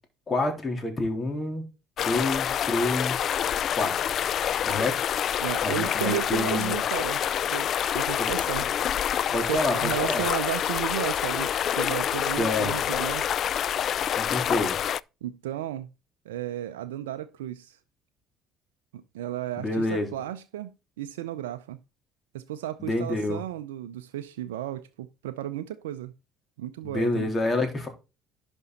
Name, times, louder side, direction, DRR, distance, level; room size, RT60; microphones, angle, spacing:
voice 1, 0.3-1.6 2.0-3.3 3.7-4.2 4.6-5.0 5.6-6.7 8.2-8.3 9.3-10.2 12.4-12.7 14.1-14.8 19.6-20.1 22.8-23.4 26.8-27.9, left 2 dB, 30° left, 3.6 m, -28 dB
sound 1, 2.0-15.0, left 9 dB, 55° left, 0.3 m, -27 dB
voice 2, 5.4-7.2 7.5-8.7 9.5-13.3 15.2-15.9 16.3-17.8 18.9-21.8 22.3-26.1 26.6-27.3, right 13 dB, 90° right, 0.5 m, -34 dB
11.0 x 5.3 x 4.0 m
hypercardioid pair, 70°, 0 cm